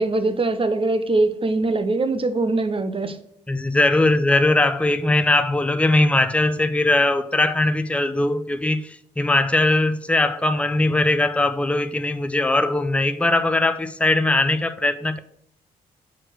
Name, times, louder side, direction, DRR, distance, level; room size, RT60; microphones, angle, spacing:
voice 1, 0.0-3.2, right 2 dB, 25° right, 0.9 m, -22 dB
voice 2, 3.5-15.2, left 2 dB, 5° left, 0.6 m, -20 dB
6.1 x 4.6 x 6.3 m
figure-of-eight pair, 40°, 20 cm